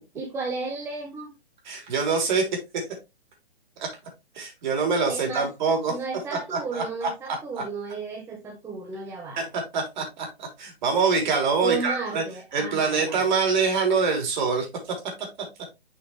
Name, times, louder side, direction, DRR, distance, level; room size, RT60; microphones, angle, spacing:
voice 1, 0.1-1.3 5.1-5.5 5.9-9.5 11.6-13.2, right 4 dB, 10° right, 0.9 m, -33 dB
voice 2, 1.6-2.5 2.7-2.8 3.8-3.9 4.3-5.9 6.5-7.1 9.4-12.2 12.5-14.7, right 4 dB, 45° right, 3.4 m, -25 dB
7.1 x 5.7 x 3.1 m
figure-of-eight pair, 135°, 32 cm